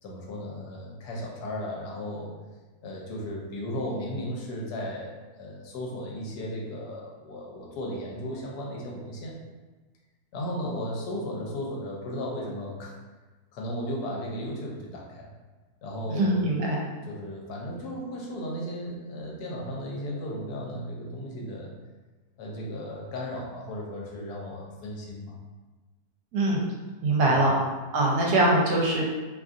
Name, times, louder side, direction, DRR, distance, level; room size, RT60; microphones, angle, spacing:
voice 1, 0.0-2.3 2.8-9.4 10.3-12.9 13.5-15.3 15.8-16.4 17.1-21.7 22.4-25.4 27.2-27.4, equal, 80° left, -2 dB, 1.2 m, -35 dB
voice 2, 16.1-16.8 26.3-26.6 27.0-27.5 27.9-29.0, right 2 dB, 80° right, -3 dB, 1.2 m, -22 dB
2.9 x 2.4 x 2.5 m, 1.3 s
omnidirectional pair, 1.7 m